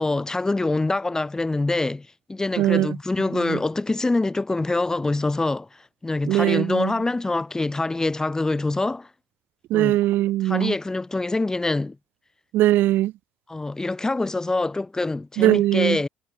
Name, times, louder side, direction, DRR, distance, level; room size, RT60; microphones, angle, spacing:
voice 1, 0.0-9.1 9.7-10.0 10.4-12.0 13.5-16.1, left 2 dB, 15° left, 2.1 m, -25 dB
voice 2, 2.6-3.0 3.3-3.6 6.3-6.9 9.7-10.7 12.5-13.1 15.4-16.0, right 15 dB, 55° right, 1.0 m, -20 dB
figure-of-eight pair, 55°, 4 cm